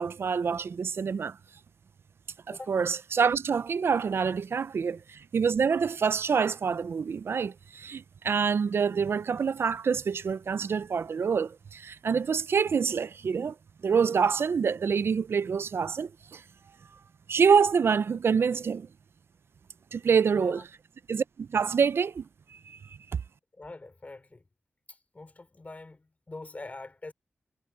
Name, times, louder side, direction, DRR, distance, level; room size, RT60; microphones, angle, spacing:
voice 1, 0.0-1.4 2.5-13.5 13.8-16.4 17.3-18.9 19.9-20.6 21.1-22.3 22.5-22.8, right 6 dB, 75° right, 0.5 m, -26 dB
voice 2, 20.3-20.6 23.6-24.4 24.9-27.1, left 2 dB, 35° left, 3.4 m, -44 dB
cardioid pair, 65°, 4 cm